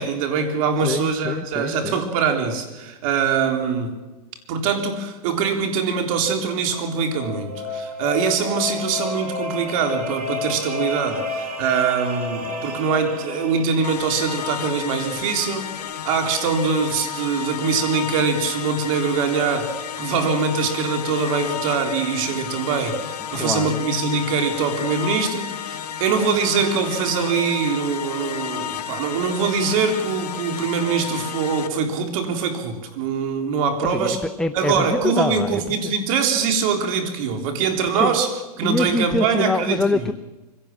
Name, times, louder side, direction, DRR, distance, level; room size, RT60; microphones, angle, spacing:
voice 1, 0.0-3.9 4.5-15.7 16.1-34.2 34.5-40.0, right 5 dB, 60° right, 5 dB, 3.8 m, -23 dB
voice 2, 0.8-2.0 23.3-23.8 33.8-35.9 38.0-38.2 38.6-40.1, left 2 dB, 5° left, 8 dB, 0.6 m, -25 dB
sound 1, 6.6-14.4, left 3 dB, 75° right, 7.3 m, -31 dB
sound 2, 13.8-31.7, left 9 dB, 80° left, 1.9 m, -32 dB
24.5 x 17.5 x 7.5 m, 1.1 s
hypercardioid pair, 130°, 20 cm